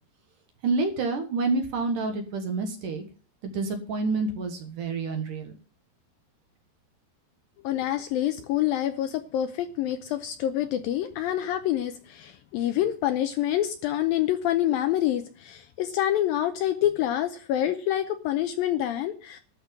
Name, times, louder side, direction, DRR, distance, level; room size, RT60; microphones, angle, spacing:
voice 1, 0.6-3.0 3.4-5.5, right 3 dB, 60° right, 6 dB, 2.6 m, -28 dB
voice 2, 7.6-19.4, left 12 dB, 80° left, 9 dB, 2.2 m, -27 dB
12.5 x 5.4 x 9.1 m, 0.39 s
omnidirectional pair, 4.8 m